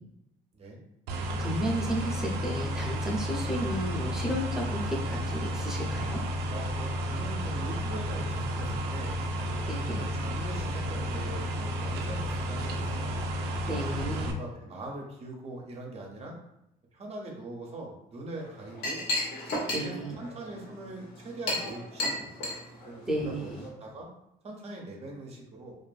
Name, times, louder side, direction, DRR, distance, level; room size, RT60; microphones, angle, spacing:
sound 1, 1.1-14.3, equal, 80° right, 0.4 m, -32 dB
voice 1, 1.2-6.2 9.7-10.0 13.6-14.4 19.7-20.1 23.1-23.6, equal, 5° right, -2 dB, 0.6 m, -33 dB
voice 2, 6.5-9.2 10.0-13.2 14.3-16.3 16.9-19.0 19.7-22.3 22.8-23.5 23.8-24.1 24.4-25.7, right 2 dB, 40° right, -1 dB, 0.7 m, -42 dB
Chink clink, 18.3-23.7, left 1 dB, 80° left, 0.9 m, -34 dB
2.6 x 2.4 x 2.3 m, 0.83 s
cardioid pair, 110°, 17 cm